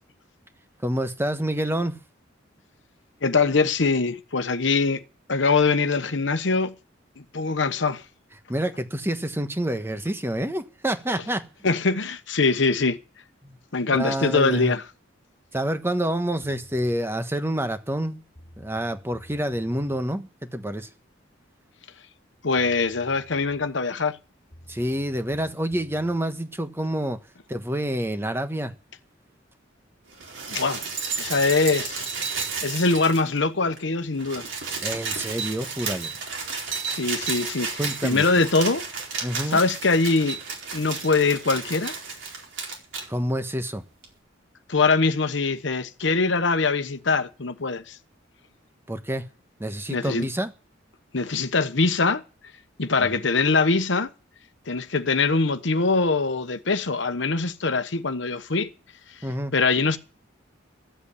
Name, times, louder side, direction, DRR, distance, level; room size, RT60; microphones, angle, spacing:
voice 1, 0.8-2.0 8.5-11.5 13.4-13.6 13.9-14.8 15.5-18.2 18.6-20.9 24.7-27.2 27.5-28.7 34.8-36.1 37.8-38.2 39.2-39.6 43.1-43.8 48.9-49.3 49.6-50.5 59.2-59.5, right 1 dB, 10° right, 1.2 m, -27 dB
voice 2, 3.2-5.0 5.3-6.7 7.2-8.0 11.6-13.0 13.7-14.8 22.4-24.2 30.5-30.8 31.2-32.1 32.6-34.5 36.8-38.8 39.5-40.4 40.7-41.9 44.7-48.0 49.9-50.3 51.1-52.2 52.8-54.1 54.7-58.7 59.5-60.0, left 4 dB, 70° left, 1.1 m, -23 dB
sound 1, 16.4-17.0 18.0-18.1 18.3-20.0 22.2-22.3 22.6-23.8 24.5-26.2, left 1 dB, 25° left, 2.6 m, -50 dB
sound 2, 30.1-33.4 33.7-33.8 34.1-43.1 44.0-44.1, right 5 dB, 70° right, 4.4 m, -32 dB
13.5 x 8.2 x 8.5 m
head